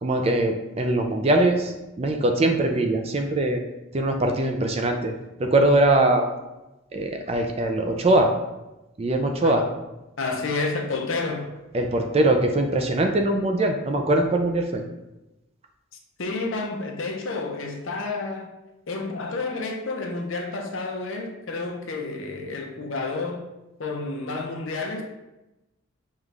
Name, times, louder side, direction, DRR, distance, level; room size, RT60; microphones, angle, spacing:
voice 1, 0.0-3.6 3.9-5.1 5.4-6.3 6.9-8.3 9.0-9.6 11.7-14.8, right 1 dB, 30° right, 0.4 m, -22 dB
voice 2, 10.2-11.5 16.2-18.5 18.9-23.4 23.8-25.0, left 3 dB, 75° left, 0.7 m, -30 dB
5.5 x 2.4 x 3.3 m
head